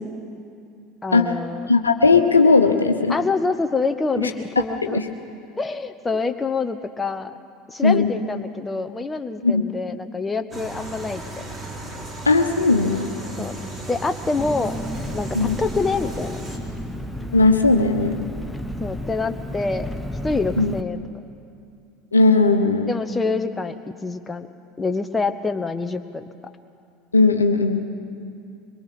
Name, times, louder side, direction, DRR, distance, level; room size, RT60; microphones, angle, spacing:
voice 1, 1.0-1.7 3.1-5.0 5.6-7.3 7.7-11.4 13.4-13.6 13.9-14.8 15.1-16.4 18.8-19.9 20.2-21.0 22.9-23.7 24.0-24.5 24.8-26.2, left 3 dB, 15° left, 8 dB, 1.1 m, -26 dB
voice 2, 1.7-3.2 4.2-4.3 4.9-5.1 7.8-8.1 9.4-9.6 12.2-13.1 15.3-15.6 17.3-18.2 20.6-20.8 22.1-22.9 27.1-27.8, left 3 dB, 85° left, 6 dB, 1.1 m, -17 dB
sound 1, 10.5-16.6, right 1 dB, 20° right, 4.2 m, -35 dB
Engine, 14.4-20.8, equal, ahead, 1.3 m, -32 dB
23.5 x 22.5 x 6.0 m, 2.4 s
figure-of-eight pair, 75°, 0 cm